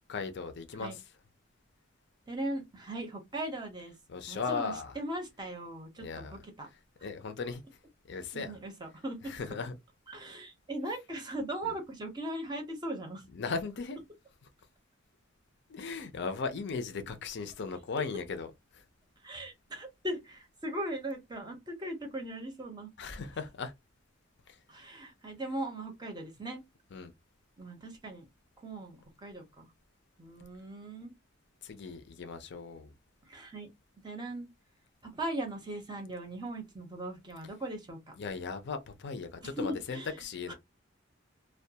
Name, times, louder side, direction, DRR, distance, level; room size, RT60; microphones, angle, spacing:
voice 1, 0.1-1.0 4.1-5.0 6.0-6.3 7.0-7.6 8.1-8.6 9.2-9.7 11.6-11.7 13.3-14.0 15.7-18.5 23.0-23.7 24.5-24.6 26.9-27.1 31.6-32.9 38.2-40.5, left 4 dB, 60° left, 0.5 m, -37 dB
voice 2, 2.3-3.9 4.3-6.7 8.3-9.3 10.1-13.2 19.2-22.9 24.7-26.6 27.6-28.3 28.6-29.7 30.2-31.1 33.3-33.7 34.0-34.5 35.0-38.2 39.4-40.1 40.5-40.6, right 1 dB, 20° right, 0.6 m, -39 dB
2.2 x 2.2 x 2.7 m
head